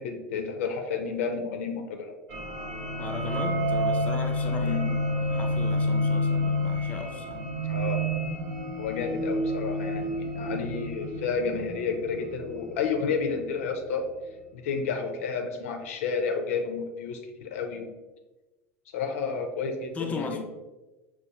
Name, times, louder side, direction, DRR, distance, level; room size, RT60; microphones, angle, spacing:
voice 1, 0.0-2.2 4.6-5.0 7.6-8.1 8.8-14.0 14.5-17.9 18.9-20.4, left 5 dB, 65° left, 0.5 m, -31 dB
sound 1, 2.3-13.6, left 1 dB, 55° right, 0.8 m, -29 dB
voice 2, 3.0-4.8 5.1-7.5 10.4-10.7 19.9-20.4, left 3 dB, 20° left, 0.4 m, -37 dB
5.5 x 2.2 x 2.8 m
figure-of-eight pair, 75°, 8 cm